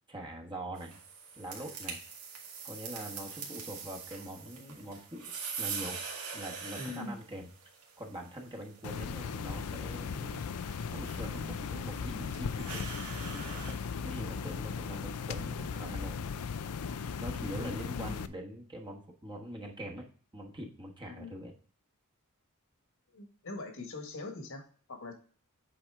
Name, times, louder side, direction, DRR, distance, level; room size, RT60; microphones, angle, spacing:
voice 1, 0.1-1.0 1.4-2.0 2.6-6.0 6.3-7.5 8.0-10.5 10.9-12.8 13.2-16.2 17.2-20.1 20.3-21.5, right 1 dB, 20° right, 1 dB, 1.2 m, -43 dB
sound 1, 0.8-13.7, right 5 dB, 80° right, 1.9 m, -44 dB
voice 2, 6.8-7.2 17.5-18.2 21.0-21.4 23.1-25.1, left 2 dB, 65° left, 4 dB, 1.5 m, -42 dB
sound 2, 8.8-18.3, left 6 dB, 85° left, 0.5 m, -37 dB
7.8 x 4.4 x 3.5 m, 0.43 s
head